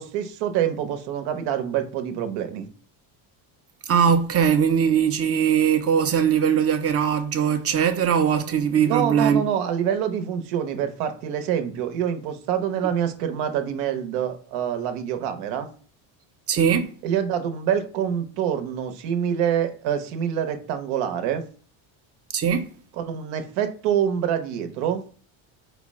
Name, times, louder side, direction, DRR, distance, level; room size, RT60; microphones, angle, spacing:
voice 1, 0.0-2.7 8.8-15.7 17.0-21.4 23.0-25.0, right 9 dB, 80° right, 0.9 m, -26 dB
voice 2, 3.9-9.4 16.5-16.9 22.3-22.7, right 7 dB, 30° right, 0.5 m, -20 dB
4.8 x 2.1 x 4.6 m
cardioid pair, 130°, 48 cm